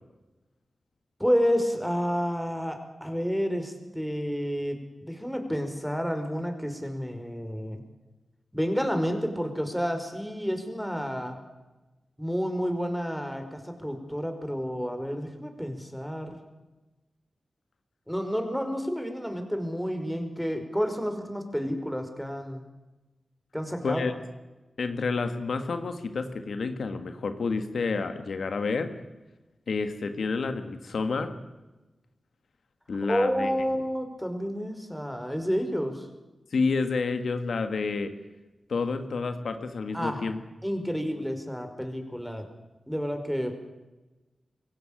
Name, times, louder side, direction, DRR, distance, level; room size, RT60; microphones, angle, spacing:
voice 1, 1.2-7.8 8.5-11.4 12.2-16.4 18.1-22.6 23.5-24.0 33.0-36.1 39.9-40.2 40.6-42.5 42.9-43.5, equal, ahead, 6 dB, 5.2 m, -30 dB
voice 2, 24.8-28.9 29.7-31.3 32.9-33.5 36.5-38.1 38.7-40.4, left 4 dB, 80° left, 8 dB, 1.8 m, -29 dB
23.0 x 17.0 x 8.9 m, 1.1 s
cardioid pair, 50°, 0 cm